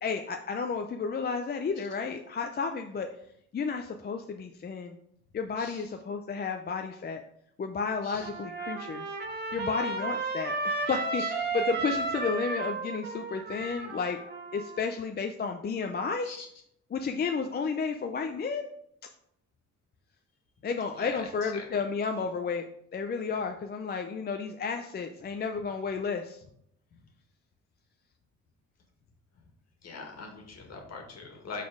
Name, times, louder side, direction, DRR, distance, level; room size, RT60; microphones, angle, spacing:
voice 1, 0.0-3.1 3.5-5.0 5.3-7.2 7.6-9.1 9.5-14.2 14.5-16.3 16.9-18.7 20.6-22.6 22.9-26.4, left 5 dB, 35° left, 5 dB, 0.5 m, -32 dB
Trumpet, 8.2-14.8, right 3 dB, 35° right, 1.6 m, -33 dB
voice 2, 20.9-21.7 29.8-31.6, left 4 dB, 60° left, 2 dB, 1.9 m, -42 dB
6.0 x 4.2 x 4.8 m, 0.72 s
cardioid pair, 90°, 30 cm